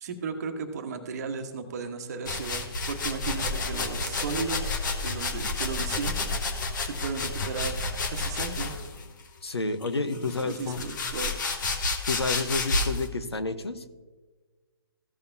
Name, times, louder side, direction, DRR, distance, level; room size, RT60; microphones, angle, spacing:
voice 1, 0.0-4.7 5.0-6.3 6.8-7.8 8.1-8.8 10.1-11.6, right 5 dB, 40° right, 6 dB, 1.1 m, -35 dB
sound 1, 2.3-9.0 9.8-13.1, left 3 dB, 50° left, 1.3 m, -30 dB
voice 2, 9.4-10.8 12.1-13.9, left 3 dB, 80° left, 9 dB, 0.9 m, -30 dB
15.0 x 6.8 x 2.7 m, 1.3 s
figure-of-eight pair, 140°, 13 cm